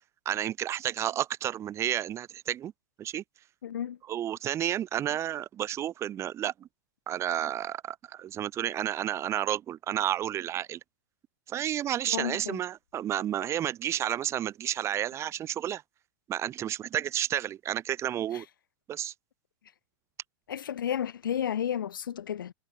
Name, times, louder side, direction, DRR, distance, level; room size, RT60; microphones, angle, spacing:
voice 1, 0.2-2.7 3.0-3.2 4.1-6.7 7.1-10.8 11.5-15.8 16.3-18.5 18.9-19.1, right 11 dB, 25° right, 0.7 m, -31 dB
voice 2, 3.6-4.0 12.1-12.6 18.3-18.4 20.5-22.5, left 9 dB, 90° left, 0.7 m, -32 dB
hypercardioid pair, 120°, 11 cm